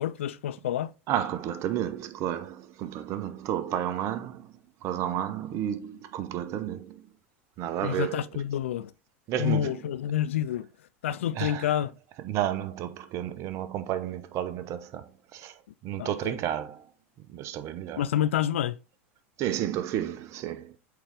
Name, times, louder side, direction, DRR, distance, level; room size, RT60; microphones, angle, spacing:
voice 1, 0.0-0.9 7.8-8.9 9.4-10.7 11.0-11.9 16.0-16.4 17.9-18.8, left 11 dB, 75° left, 0.4 m, -28 dB
voice 2, 1.1-4.5 4.8-7.0 7.6-8.2 9.3-9.7 11.4-11.7 12.2-15.5 15.8-16.8 17.3-18.0 19.4-20.8, right 11 dB, 45° right, 0.8 m, -31 dB
8.0 x 3.8 x 3.4 m
hypercardioid pair, 90°, 7 cm